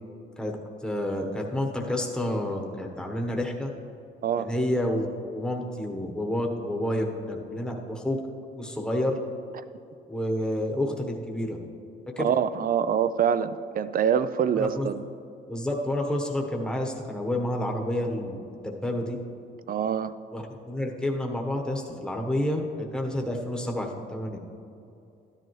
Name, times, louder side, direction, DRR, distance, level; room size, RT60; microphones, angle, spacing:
voice 1, 0.8-3.7 4.4-5.1 5.3-8.2 8.5-9.2 10.1-11.6 12.1-12.3 14.6-14.9 15.5-19.2 20.3-24.4, left 1 dB, 5° left, 0 dB, 1.1 m, -29 dB
voice 2, 12.2-15.0 19.7-20.1, right 8 dB, 45° right, 14 dB, 0.5 m, -25 dB
12.5 x 10.5 x 3.1 m, 2.6 s
cardioid pair, 90°, 20 cm